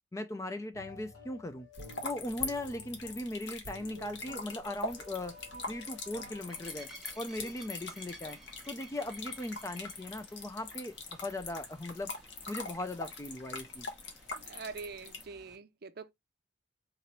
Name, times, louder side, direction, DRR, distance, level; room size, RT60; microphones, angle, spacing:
voice 1, 0.1-1.7 2.0-5.4 5.7-6.9 7.2-8.4 8.7-12.1 12.5-13.9, left 1 dB, 15° left, 0.3 m, -39 dB
sound 1, 0.7-7.5, left 1 dB, 85° left, 2.5 m, -51 dB
sound 2, 1.7-15.2, left 3 dB, 60° left, 1.0 m, -43 dB
sound 3, 4.8-15.6, right 1 dB, ahead, 0.8 m, -56 dB
voice 2, 14.3-16.1, right 4 dB, 50° right, 0.5 m, -44 dB
3.8 x 3.0 x 2.9 m
head